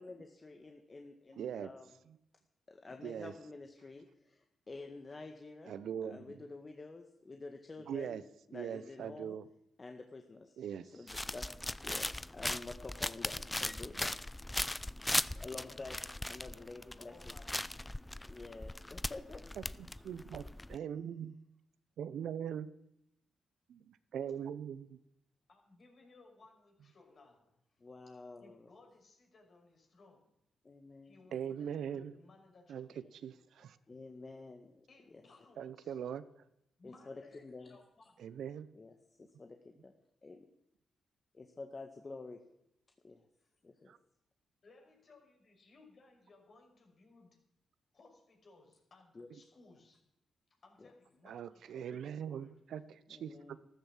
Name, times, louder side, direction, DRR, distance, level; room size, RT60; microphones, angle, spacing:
voice 1, 0.0-1.9 2.7-8.2 8.5-9.4 9.8-11.5 11.8-12.1 12.3-14.1 15.3-16.0 16.3-17.3 18.3-19.4 27.8-28.7 30.6-31.2 33.9-35.2 36.8-37.8 38.7-39.9 40.2-40.5 41.3-42.4 43.0-43.2 43.6-43.9 49.2-49.3 50.8-50.9 53.1-53.7, left 3 dB, 40° left, 5 dB, 1.8 m, -49 dB
voice 2, 1.4-1.7 3.0-3.3 5.7-6.3 7.9-8.2 8.5-9.5 10.6-10.9 19.6-21.4 22.0-22.7 23.7-25.0 31.3-32.1 32.7-32.9 33.2-33.8 35.6-36.2 38.2-38.7 43.9-44.0 51.2-53.6, right 8 dB, 70° right, 15 dB, 0.8 m, -41 dB
sound 1, 11.1-20.8, left 1 dB, 15° left, 0.6 m, -39 dB
voice 3, 17.0-17.9 25.5-27.8 28.1-30.3 31.0-33.2 33.6-33.7 34.9-36.0 36.8-38.3 43.4-43.5 44.6-47.4 47.9-50.0 50.6-52.5, left 3 dB, 55° left, 2 dB, 5.9 m, -62 dB
13.5 x 13.5 x 7.5 m, 0.79 s
hypercardioid pair, 40°, 0 cm